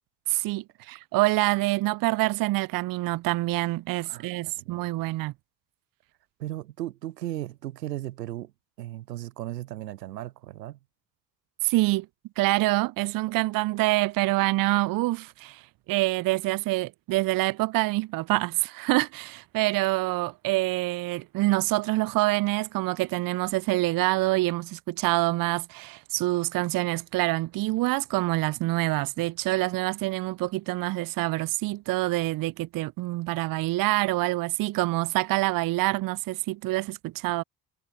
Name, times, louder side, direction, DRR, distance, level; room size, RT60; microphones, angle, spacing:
voice 1, 0.3-5.3 11.6-12.1 12.4-15.6 15.9-37.4, right 19 dB, 45° right, 0.7 m, -26 dB
voice 2, 4.0-4.9 6.4-8.5 8.8-10.8, right 14 dB, 80° right, 0.8 m, -36 dB
figure-of-eight pair, 50°, 48 cm